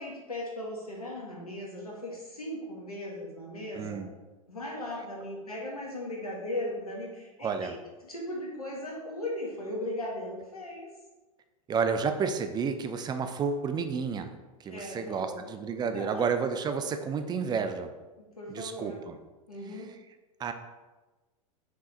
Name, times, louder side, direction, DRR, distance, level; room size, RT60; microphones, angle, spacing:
voice 1, 0.0-4.0 4.5-7.7 8.0-10.9 14.7-15.5 15.9-16.3 18.2-19.0 19.5-19.9, left 1 dB, 85° left, -2 dB, 2.0 m, -37 dB
voice 2, 3.7-4.1 7.4-7.8 11.7-14.3 14.6-17.9 18.5-19.2 20.4-20.5, right 5 dB, 20° right, 8 dB, 0.7 m, -31 dB
6.0 x 4.8 x 4.2 m, 1.2 s
figure-of-eight pair, 95°, 19 cm